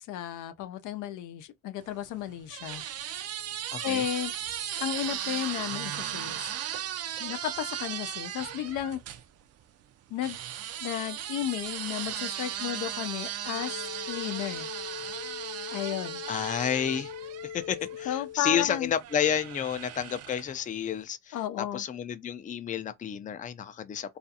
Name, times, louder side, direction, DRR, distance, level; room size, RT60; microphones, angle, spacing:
voice 1, 0.1-3.3 3.8-4.3 4.8-6.5 7.2-9.0 10.1-10.4 10.8-14.7 15.7-16.2 18.1-18.9 21.3-21.8, left 11 dB, 90° left, 0.5 m, -33 dB
sound 1, 1.9-9.2 10.2-18.1 19.0-20.6, right 11 dB, 55° right, 0.4 m, -37 dB
voice 2, 3.7-4.0 16.3-17.1 17.5-24.2, left 8 dB, 25° left, 0.4 m, -31 dB
sound 2, 13.4-18.4, left 10 dB, 45° left, 0.9 m, -41 dB
2.4 x 2.3 x 2.6 m
cardioid pair, 90°, 30 cm